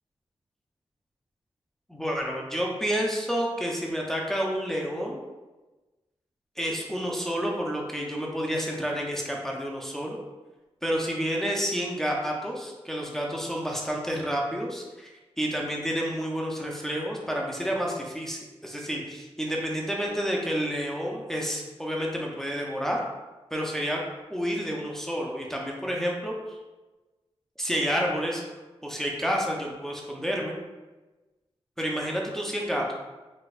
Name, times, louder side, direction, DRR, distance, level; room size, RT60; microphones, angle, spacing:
voice 1, 1.9-5.2 6.6-10.2 10.8-15.1 15.4-23.0 23.5-24.0 24.3-26.6 27.6-28.4 28.8-30.6 31.8-32.9, equal, 5° left, -2 dB, 0.4 m, -29 dB
4.0 x 2.3 x 2.3 m, 1.2 s
wide cardioid pair, 115°, 11 cm